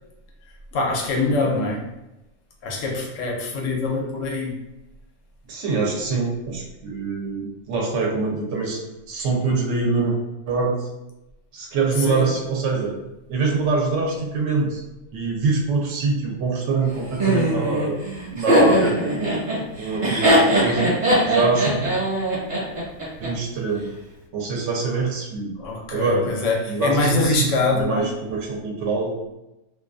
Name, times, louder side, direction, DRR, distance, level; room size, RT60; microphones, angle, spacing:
voice 1, 0.7-1.8 2.6-4.6 12.0-12.3 25.6-28.1, left 3 dB, 85° left, 0 dB, 1.0 m, -24 dB
voice 2, 5.5-8.8 9.1-10.2 10.5-10.9 11.5-12.9 13.3-14.8 15.1-18.0 18.3-19.3 19.8-20.9 21.2-22.0 23.2-23.9 24.3-25.5 25.9-26.3 26.7-29.2, right 3 dB, 75° right, 0 dB, 0.9 m, -24 dB
Laughter, 17.2-23.3, right 1 dB, 45° right, 1.0 m, -20 dB
2.4 x 2.3 x 2.4 m, 0.94 s
omnidirectional pair, 1.3 m